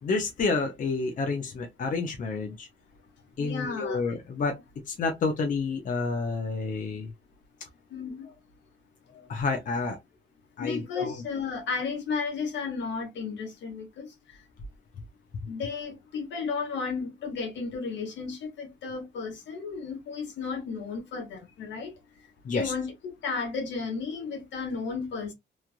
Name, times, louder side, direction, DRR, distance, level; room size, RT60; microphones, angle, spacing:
voice 1, 0.0-2.7 3.4-7.1 9.3-10.0 10.6-11.2 22.4-22.7, left 4 dB, 45° left, 0.7 m, -29 dB
voice 2, 3.4-4.1 7.9-8.3 9.1-9.3 10.6-14.1 15.5-21.9 22.5-25.3, left 5 dB, 70° left, 1.2 m, -33 dB
3.1 x 2.4 x 2.4 m
cardioid pair, 130°, 19 cm